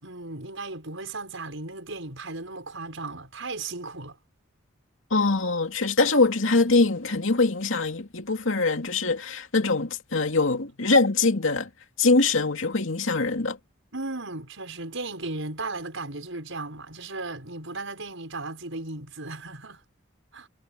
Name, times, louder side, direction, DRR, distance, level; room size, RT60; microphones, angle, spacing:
voice 1, 0.0-4.2 13.9-19.8 20.3-20.5, right 3 dB, 70° right, 6.3 m, -36 dB
voice 2, 5.1-11.7 12.0-13.6, left 3 dB, 75° left, 2.5 m, -23 dB
head